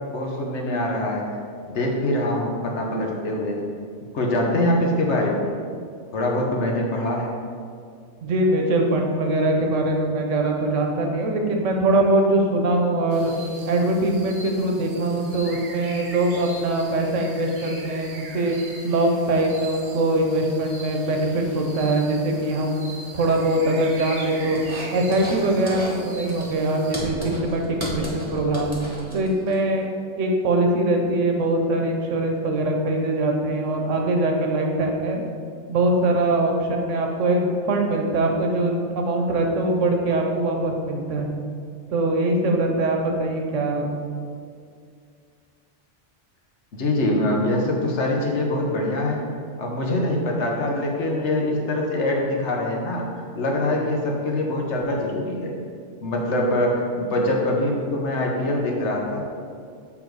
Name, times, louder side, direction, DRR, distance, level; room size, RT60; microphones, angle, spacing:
voice 1, 0.1-1.2 1.7-3.6 4.1-5.5 6.1-7.3 46.8-49.2 49.6-53.1 53.3-55.5 56.0-59.2, left 1 dB, 70° left, -1 dB, 1.2 m, -24 dB
voice 2, 8.2-13.3 13.7-18.6 18.8-22.8 23.1-24.6 24.9-28.7 29.1-29.9 30.2-35.2 35.7-41.3 41.9-43.9, right 2 dB, 85° right, 2 dB, 1.2 m, -22 dB
sound 1, 13.1-26.9, right 2 dB, 55° right, 1.0 m, -41 dB
sound 2, 24.5-25.4 25.7-26.0 26.3-29.5, equal, 25° right, 1.3 m, -34 dB
7.1 x 3.5 x 4.6 m, 2.2 s
omnidirectional pair, 1.2 m